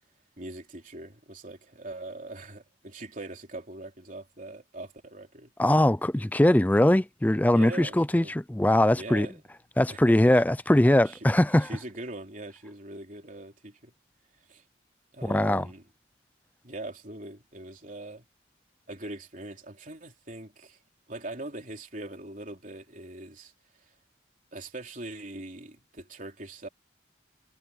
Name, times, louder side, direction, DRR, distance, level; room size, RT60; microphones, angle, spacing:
voice 1, 0.4-5.5 7.5-8.3 8.9-9.4 9.9-10.4 11.0-11.2 11.6-13.9 14.5-14.6 15.1-15.8 16.6-18.3 18.9-20.8 21.1-23.5 24.5-26.7, right 2 dB, 45° right, 3.6 m, -41 dB
voice 2, 5.6-9.3 9.8-11.7 15.2-15.6, left 1 dB, 10° left, 0.4 m, -21 dB
head